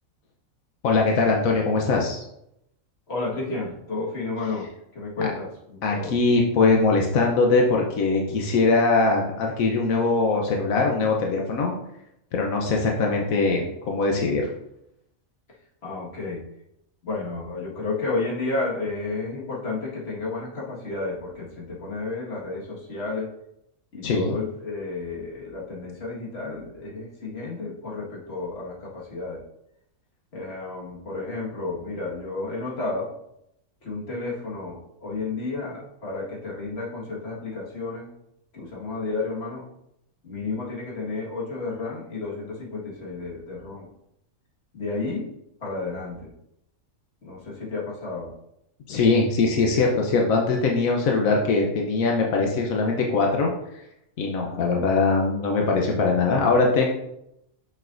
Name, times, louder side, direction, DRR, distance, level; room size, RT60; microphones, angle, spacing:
voice 1, 0.8-2.2 5.2-5.3 5.8-11.8 12.3-14.5 24.0-24.4 48.9-53.5 54.2-56.9, left 3 dB, 85° left, 0 dB, 1.2 m, -21 dB
voice 2, 3.1-4.7 4.9-6.1 15.8-16.4 17.0-23.3 23.9-29.4 30.3-33.1 33.8-38.1 38.5-39.6 40.2-43.9 44.7-45.3 45.6-46.3 47.2-48.3 54.4-54.8, left 3 dB, 50° left, -4 dB, 1.9 m, -32 dB
6.6 x 6.4 x 2.5 m, 0.80 s
omnidirectional pair, 1.4 m